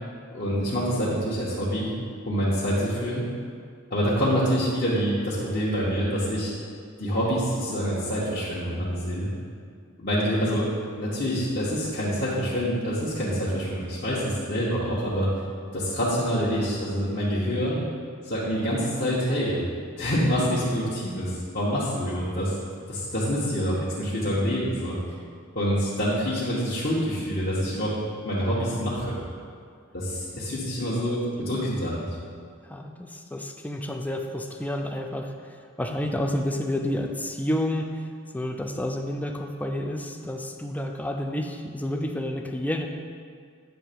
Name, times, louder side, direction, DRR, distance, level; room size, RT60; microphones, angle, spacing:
voice 1, 0.3-1.9 2.3-3.2 3.9-6.5 7.0-9.3 10.0-10.7 11.0-15.3 15.7-17.8 18.2-19.6 20.0-22.5 22.9-25.2 25.5-27.9 28.2-29.2 29.9-32.1, equal, 45° left, -10 dB, 1.3 m, -26 dB
voice 2, 32.6-38.1 38.3-42.9, left 1 dB, 5° left, 3 dB, 0.5 m, -30 dB
9.2 x 3.3 x 6.8 m, 2.2 s
head